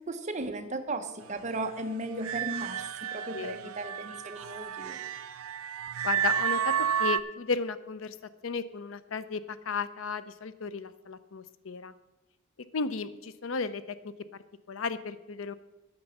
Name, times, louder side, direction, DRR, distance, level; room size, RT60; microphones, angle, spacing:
voice 1, 0.1-5.0, right 2 dB, 35° right, 7 dB, 0.8 m, -36 dB
sound 1, 2.2-7.2, right 9 dB, 85° right, 0.4 m, -31 dB
voice 2, 3.3-3.7 6.0-8.2 8.4-11.9 12.7-14.0 14.7-15.5, left 5 dB, 65° left, 14 dB, 0.5 m, -34 dB
8.9 x 5.9 x 7.9 m, 1.1 s
head